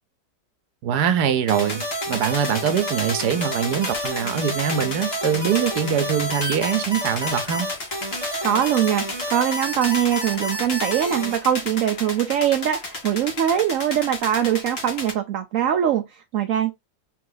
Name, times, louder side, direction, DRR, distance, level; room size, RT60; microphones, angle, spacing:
voice 1, 0.8-7.7, right 8 dB, 90° right, 1.3 m, -23 dB
sound 1, 1.5-15.1, left 2 dB, 40° left, 1.4 m, -33 dB
sound 2, 1.5-11.4, equal, 15° right, 1.4 m, -30 dB
voice 2, 8.4-16.7, right 10 dB, 65° right, 0.9 m, -22 dB
3.9 x 2.8 x 3.9 m
omnidirectional pair, 1.7 m